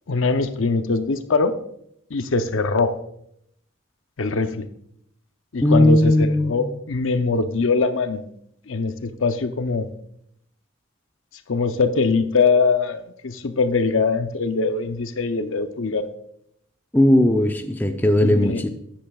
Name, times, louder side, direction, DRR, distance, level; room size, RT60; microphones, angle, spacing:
voice 1, 0.1-1.5 2.1-2.9 4.2-4.7 5.5-8.2 8.7-9.9 11.5-16.1 18.2-18.6, left 4 dB, 70° left, 9 dB, 0.7 m, -22 dB
voice 2, 5.6-6.6 16.9-18.7, left 1 dB, 10° left, 5 dB, 0.5 m, -17 dB
13.5 x 10.0 x 2.4 m, 0.73 s
head